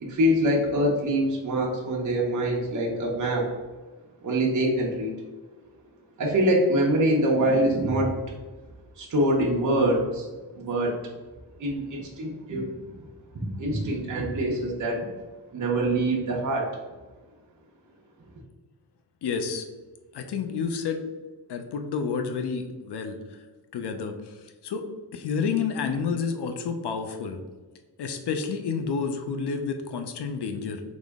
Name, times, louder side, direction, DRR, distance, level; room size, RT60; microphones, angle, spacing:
voice 1, 0.0-3.5 4.2-5.1 6.2-8.1 9.0-10.3 10.6-10.9 11.6-12.7 13.3-15.1 15.5-16.7, right 1 dB, 45° right, -2 dB, 0.9 m, -24 dB
voice 2, 19.2-19.7 20.1-21.0 21.5-23.2 23.7-24.4 24.6-24.8 25.1-27.4 28.0-30.8, left 5 dB, 80° left, 7 dB, 0.6 m, -29 dB
4.1 x 3.0 x 3.5 m, 1.3 s
wide cardioid pair, 115°, 40 cm